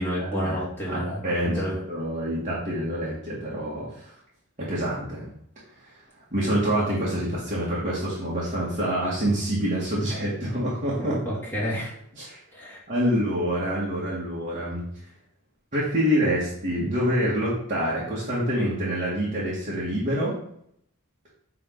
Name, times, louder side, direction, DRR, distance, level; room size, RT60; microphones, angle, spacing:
voice 1, 0.0-1.8 11.0-11.9 12.5-12.8, equal, 10° left, -8 dB, 2.8 m, -30 dB
voice 2, 0.9-4.1 4.6-5.3 6.3-11.2 12.2-12.4 12.9-14.8 15.7-20.3, equal, 35° right, -8 dB, 2.2 m, -26 dB
9.3 x 3.9 x 4.0 m, 0.69 s
head